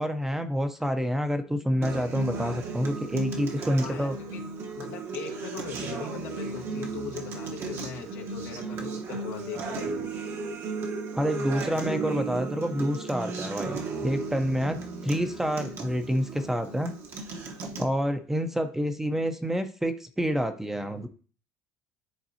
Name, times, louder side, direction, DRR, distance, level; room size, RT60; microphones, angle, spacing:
voice 1, 0.0-4.1 11.1-13.8 14.0-16.9 17.8-21.1, equal, 5° right, 8 dB, 0.7 m, -28 dB
Acoustic guitar, 1.8-17.8, right 4 dB, 45° right, 1.1 m, -35 dB
voice 2, 3.8-4.5 4.7-10.1, left 6 dB, 85° left, 1 dB, 1.5 m, -40 dB
10.5 x 4.0 x 2.8 m, 0.39 s
cardioid pair, 115°, 6 cm